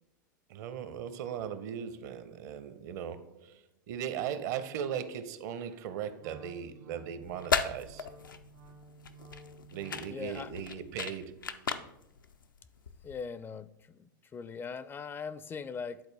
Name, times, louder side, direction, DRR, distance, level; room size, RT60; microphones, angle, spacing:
voice 1, 0.5-8.1 9.7-11.7, right 8 dB, 60° right, 0.7 m, -38 dB
Wind instrument woodwind instrument, 6.2-10.2, right 2 dB, 80° right, 1.9 m, -53 dB
sound 1, 7.2-13.3, left 6 dB, 90° left, 0.5 m, -36 dB
voice 2, 10.0-10.5 13.0-16.0, left 5 dB, 20° left, 0.4 m, -40 dB
10.5 x 4.0 x 3.3 m
hypercardioid pair, 95°, 11 cm